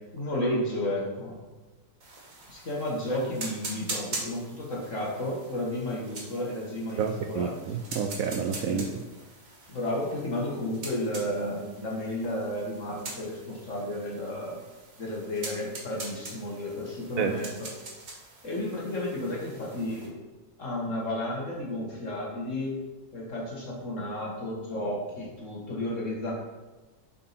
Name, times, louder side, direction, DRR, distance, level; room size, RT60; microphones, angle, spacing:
voice 1, 0.0-1.4 2.5-7.5 8.7-8.9 9.7-14.6 15.0-17.7 18.4-20.1 20.6-22.8 23.1-26.3, left 1 dB, 45° left, -4 dB, 1.9 m, -32 dB
sound 1, 2.0-20.1, right 2 dB, 50° right, 1.9 m, -43 dB
voice 2, 7.0-8.9 17.2-17.3, right 7 dB, 75° right, 5 dB, 0.8 m, -29 dB
7.4 x 4.5 x 4.2 m, 1.2 s
omnidirectional pair, 1.9 m